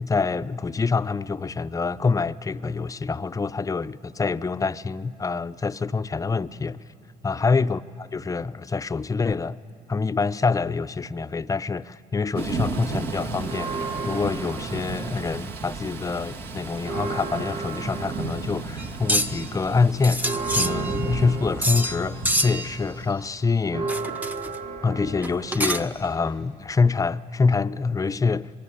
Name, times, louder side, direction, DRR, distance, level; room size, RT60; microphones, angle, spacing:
voice 1, 0.0-6.8 7.2-9.6 9.9-23.9 24.8-28.5, left 4 dB, 20° left, 0.6 m, -26 dB
Thunder / Rain, 12.4-23.1, right 4 dB, 75° right, 2.0 m, -34 dB
Church bell, 13.4-15.8 16.2-16.3 16.6-26.7, right 4 dB, 40° right, 1.3 m, -35 dB
sound 1, 18.8-19.5 20.0-21.2 21.6-22.0 22.2-22.8 23.9-24.6 25.2-26.0, equal, 10° right, 0.9 m, -26 dB
25.5 x 21.5 x 9.8 m
supercardioid pair, 75°, 17 cm